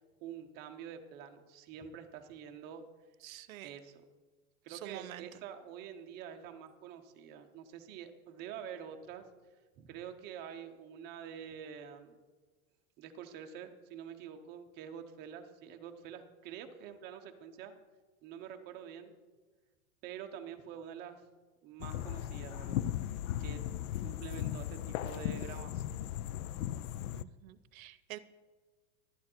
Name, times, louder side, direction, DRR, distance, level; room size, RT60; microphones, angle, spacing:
voice 1, 0.2-2.8 3.6-4.0 4.6-9.3 9.8-12.2 13.0-17.7 18.2-19.1 20.0-21.3 21.6-22.8 23.1-23.6 24.0-26.0, right 8 dB, 25° right, 5 dB, 0.7 m, -47 dB
voice 2, 3.2-3.7 4.7-5.3 27.1-28.2, right 14 dB, 80° right, 16 dB, 0.8 m, -47 dB
sound 1, 21.8-27.2, left 12 dB, 80° left, 0.5 m, -37 dB
12.0 x 8.9 x 4.4 m, 1.3 s
supercardioid pair, 165°, 41 cm